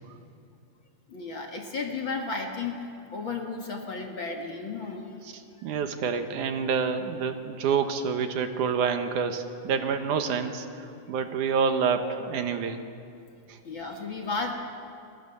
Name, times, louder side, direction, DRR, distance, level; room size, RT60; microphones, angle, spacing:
voice 1, 1.1-5.0 13.6-14.5, left 4 dB, 45° left, 2 dB, 2.2 m, -33 dB
voice 2, 5.6-12.8 13.5-13.6, right 6 dB, 75° right, 7 dB, 2.7 m, -27 dB
27.5 x 22.5 x 7.1 m, 2.5 s
omnidirectional pair, 3.7 m